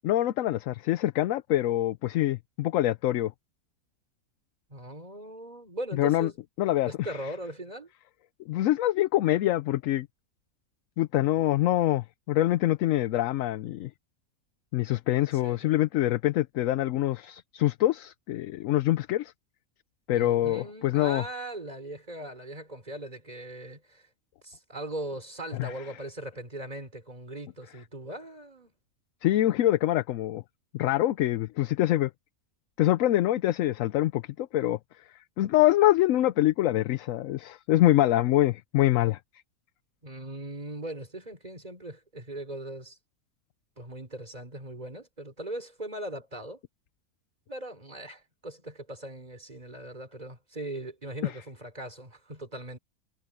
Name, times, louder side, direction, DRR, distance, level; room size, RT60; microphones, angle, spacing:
voice 1, 0.0-3.3 6.0-6.3 6.6-6.9 8.5-10.1 11.0-13.9 14.7-19.3 20.1-21.2 25.5-25.7 29.2-30.4 30.7-32.1 32.8-34.8 35.4-39.2 51.2-51.3, left 14 dB, 70° left, 0.9 m, -25 dB
voice 2, 4.7-6.3 6.8-7.9 15.2-15.8 20.1-24.1 24.4-28.7 40.0-43.0 43.8-46.6 47.5-52.8, right 1 dB, 25° right, 4.4 m, -39 dB
omnidirectional pair, 1.5 m